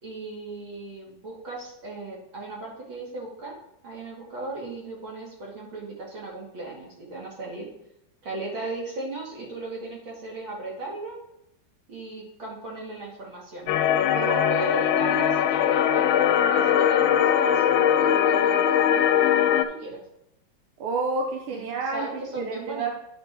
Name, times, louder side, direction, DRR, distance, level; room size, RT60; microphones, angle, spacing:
voice 1, 0.0-3.6 3.8-7.7 8.2-11.2 11.9-13.7 14.5-20.0 21.5-21.6 21.9-22.9, right 2 dB, 70° right, -3 dB, 3.0 m, -36 dB
sound 1, 13.7-19.6, left 9 dB, 75° left, 1.3 m, -21 dB
voice 2, 14.1-14.6 14.9-15.2 20.8-22.9, right 3 dB, 90° right, 1 dB, 1.7 m, -30 dB
9.4 x 4.4 x 4.6 m, 0.83 s
omnidirectional pair, 2.3 m